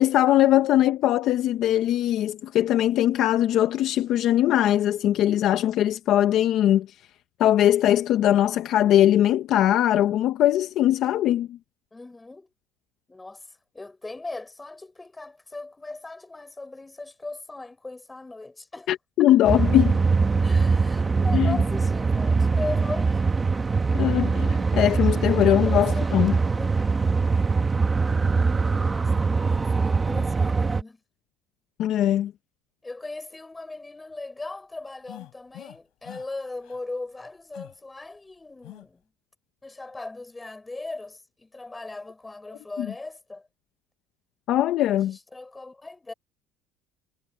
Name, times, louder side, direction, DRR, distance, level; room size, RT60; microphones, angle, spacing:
voice 1, 0.0-6.9 7.4-11.6 18.9-20.0 21.3-21.6 23.9-26.4 31.8-32.3 42.8-42.9 44.5-45.2, left 12 dB, 45° left, 0.7 m, -21 dB
voice 2, 11.9-12.5 13.1-18.9 19.3-19.4 20.4-23.2 25.1-26.8 28.7-31.0 32.8-39.0 39.6-43.5 44.9-46.1, left 2 dB, 10° left, 5.4 m, -39 dB
sound 1, 19.5-30.8, right 4 dB, 15° right, 1.1 m, -22 dB
sound 2, 35.1-35.8 36.0-36.3 36.6-36.8 37.5-37.8 38.6-38.9, left 20 dB, 60° left, 5.7 m, -43 dB
cardioid pair, 165°, 0 cm